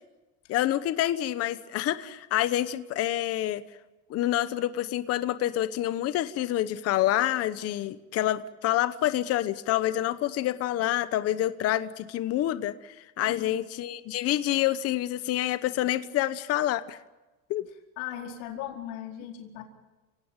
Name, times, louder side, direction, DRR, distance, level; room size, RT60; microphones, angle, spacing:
voice 1, 0.5-3.6 4.1-17.0 17.5-17.7, left 13 dB, 35° left, 13 dB, 0.9 m, -27 dB
voice 2, 18.0-19.6, left 10 dB, 70° left, 2 dB, 4.7 m, -38 dB
30.0 x 18.0 x 9.0 m, 1.1 s
cardioid pair, 155°, 40 cm